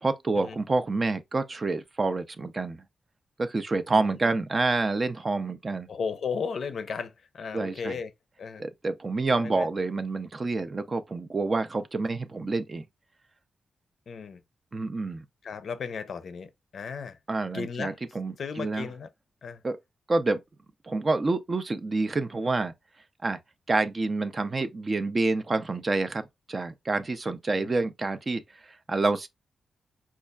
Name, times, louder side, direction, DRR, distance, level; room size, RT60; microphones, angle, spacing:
voice 1, 0.0-2.8 3.4-5.9 7.5-8.0 8.6-12.8 14.7-15.2 17.3-18.9 19.6-19.8 20.1-20.4 20.8-22.7 23.2-23.4 23.7-29.3, right 3 dB, 30° right, 0.4 m, -28 dB
voice 2, 3.9-4.4 5.9-8.1 8.4-8.6 9.4-9.7 14.1-14.4 15.4-17.2 17.5-18.0 18.4-19.1 19.4-19.6 27.5-27.7, left 5 dB, 60° left, 0.5 m, -35 dB
5.2 x 2.3 x 2.2 m
wide cardioid pair, 135°, 0 cm